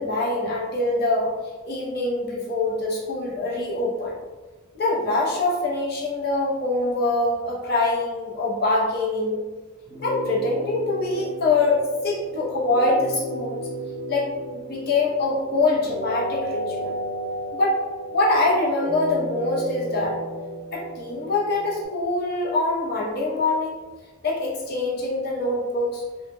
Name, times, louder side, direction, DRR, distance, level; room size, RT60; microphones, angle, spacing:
voice 1, 0.0-1.3 1.6-4.1 4.7-9.4 10.0-13.7 14.1-14.3 14.5-17.0 17.5-17.8 18.1-20.2 20.7-23.8 24.2-26.0, left 2 dB, 50° left, -5 dB, 0.5 m, -24 dB
sound 1, 9.9-21.9, right 1 dB, 10° left, 0.7 m, -33 dB
2.1 x 2.1 x 3.0 m, 1.3 s
head